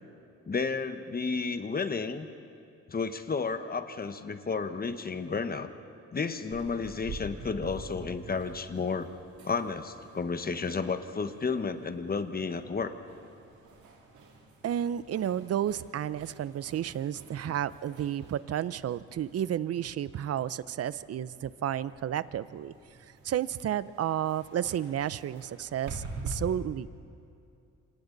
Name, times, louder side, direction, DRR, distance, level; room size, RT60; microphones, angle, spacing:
voice 1, 0.5-2.3 2.9-5.7 6.1-9.1 9.4-12.9 17.4-17.5, left 4 dB, 30° left, 9 dB, 1.3 m, -32 dB
Walking with metalic noises, 6.5-26.3, right 3 dB, 75° right, 3.8 m, -48 dB
voice 2, 14.6-22.7 23.2-26.9, right 10 dB, 55° right, 17 dB, 0.7 m, -32 dB
27.0 x 25.5 x 4.0 m, 2.6 s
cardioid pair, 90°, 30 cm